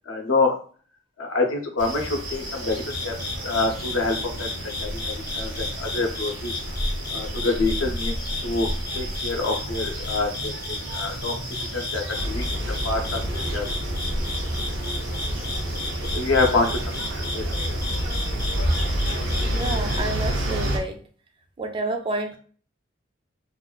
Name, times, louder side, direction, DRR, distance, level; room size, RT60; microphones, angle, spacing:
voice 1, 0.1-0.5 1.2-3.1 3.4-4.5 4.8-5.5 5.8-6.6 7.1-8.7 8.9-11.3 11.7-12.4 12.8-13.7 16.1-16.7 17.1-17.4, left 3 dB, 90° left, 2 dB, 0.6 m, -26 dB
sound 1, 1.8-20.8, right 1 dB, 65° right, 0.9 m, -34 dB
sound 2, 2.7-20.0, left 3 dB, 55° left, 0.7 m, -35 dB
sound 3, 12.1-20.8, equal, 85° right, 0.5 m, -28 dB
voice 2, 19.4-21.0 21.6-22.4, right 2 dB, 25° right, 5 dB, 0.3 m, -29 dB
2.4 x 2.2 x 2.3 m, 0.43 s
head